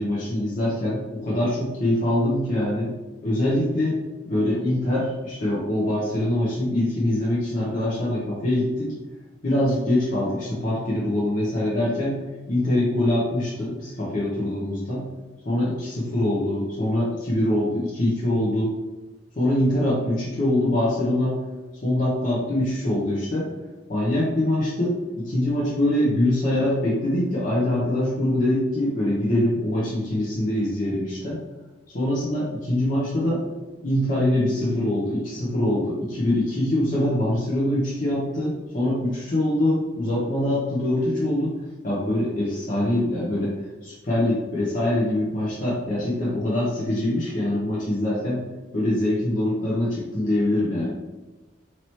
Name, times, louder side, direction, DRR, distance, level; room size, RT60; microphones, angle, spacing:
voice 1, 0.0-2.9 3.2-4.0 4.3-8.9 9.4-12.2 12.5-15.1 15.4-18.8 19.4-21.4 21.8-23.5 23.9-31.4 31.9-33.4 33.8-41.5 41.8-43.5 43.8-48.4 48.7-50.9, left 1 dB, 40° left, -7 dB, 0.8 m, -24 dB
3.0 x 2.9 x 4.3 m, 1.2 s
head